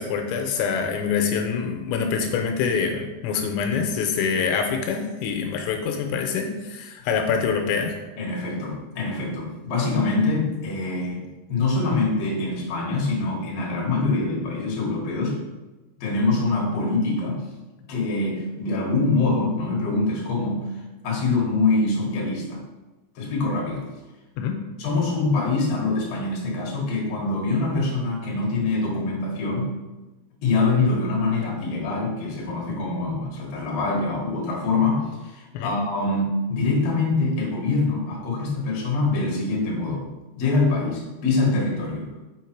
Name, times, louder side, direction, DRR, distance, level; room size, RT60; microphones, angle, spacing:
voice 1, 0.0-8.0 24.4-24.6 35.5-35.7, left 6 dB, 85° left, 3 dB, 2.9 m, -25 dB
voice 2, 8.2-15.4 16.0-17.4 17.9-20.6 21.0-22.6 23.2-23.9 24.8-29.7 30.4-40.0 40.4-42.1, left 3 dB, 55° left, -3 dB, 2.1 m, -24 dB
7.0 x 5.2 x 4.6 m, 1.1 s
omnidirectional pair, 5.4 m